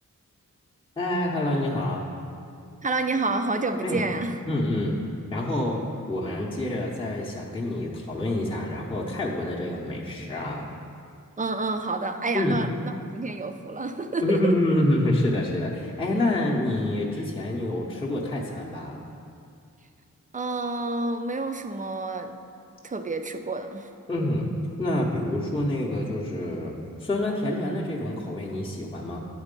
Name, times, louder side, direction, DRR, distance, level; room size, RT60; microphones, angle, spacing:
voice 1, 1.0-2.1 3.8-4.1 4.5-4.9 5.3-5.8 6.1-10.7 12.3-12.6 14.2-19.0 24.1-24.5 24.8-26.7 27.0-29.2, left 1 dB, 15° left, -4 dB, 0.7 m, -27 dB
voice 2, 2.8-4.4 11.4-14.5 20.3-22.3 22.8-23.9, right 3 dB, 25° right, 7 dB, 0.3 m, -29 dB
9.8 x 4.1 x 5.2 m, 2.4 s
wide cardioid pair, 130°, 33 cm